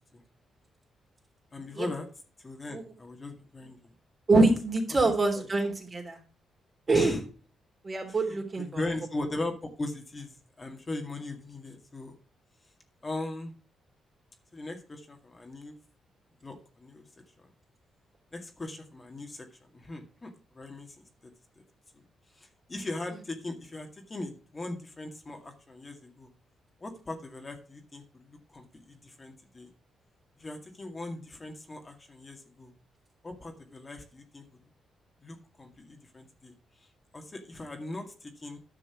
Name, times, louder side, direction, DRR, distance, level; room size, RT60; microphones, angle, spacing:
voice 1, 1.5-2.1 2.4-3.9 5.0-5.5 6.9-7.2 8.1-12.2 13.0-13.5 14.5-15.7 16.4-17.1 17.4-17.5 18.3-21.0 21.9-22.0 22.3-26.3 26.8-29.7 30.4-32.7 33.2-34.6 35.2-38.6, left 2 dB, 30° left, 4 dB, 2.0 m, -39 dB
voice 2, 4.3-6.2 6.9-7.2 7.8-8.9 9.2-9.3 23.1-23.2, right 3 dB, 35° right, 3 dB, 3.3 m, -25 dB
10.5 x 6.0 x 5.9 m, 0.38 s
cardioid pair, 80°, 0 cm